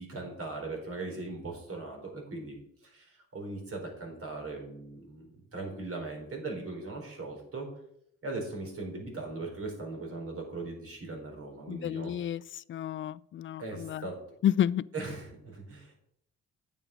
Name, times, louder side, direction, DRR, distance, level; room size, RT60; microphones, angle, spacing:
voice 1, 0.0-2.6 2.8-7.7 8.2-12.1 13.6-14.2 14.9-15.9, right 3 dB, 50° right, 4.4 m, -39 dB
voice 2, 11.7-12.4 12.7-14.0 14.4-14.8, left 10 dB, 40° left, 0.4 m, -30 dB
9.4 x 7.6 x 5.2 m
cardioid pair, 90°, 30 cm